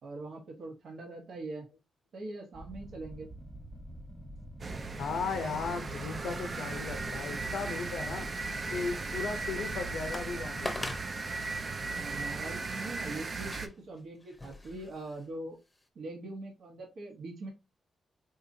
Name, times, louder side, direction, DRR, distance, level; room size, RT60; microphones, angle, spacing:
voice 1, 0.0-1.7 2.1-3.3 11.9-15.6 15.9-17.5, right 2 dB, 70° right, 1.0 m, -42 dB
sound 1, 2.5-11.0, right 1 dB, ahead, 1.1 m, -47 dB
sound 2, 4.6-13.7, right 3 dB, 45° right, 0.6 m, -37 dB
voice 2, 5.0-8.3 8.7-11.0, left 5 dB, 80° left, 0.6 m, -36 dB
sound 3, 10.1-10.3 10.7-11.1 11.9-12.0 13.4-15.3 15.7-15.8, left 1 dB, 20° left, 0.7 m, -42 dB
3.9 x 2.8 x 2.6 m
cardioid pair, 70°, 0 cm